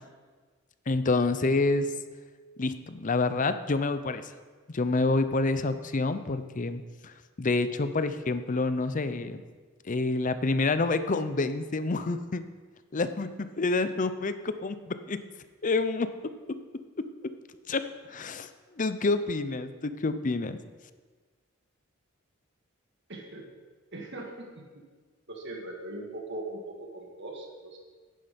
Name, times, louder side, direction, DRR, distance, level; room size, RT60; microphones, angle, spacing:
voice 1, 0.9-1.9 2.6-4.3 4.7-9.4 9.9-12.4 12.9-15.2 15.6-16.6 17.0-17.1 17.7-18.5 18.8-20.6, left 3 dB, 40° left, 11 dB, 0.6 m, -28 dB
voice 2, 23.1-23.5 23.9-24.6 25.3-27.8, right 2 dB, 60° right, 0 dB, 1.7 m, -40 dB
10.5 x 10.0 x 5.2 m, 1.4 s
head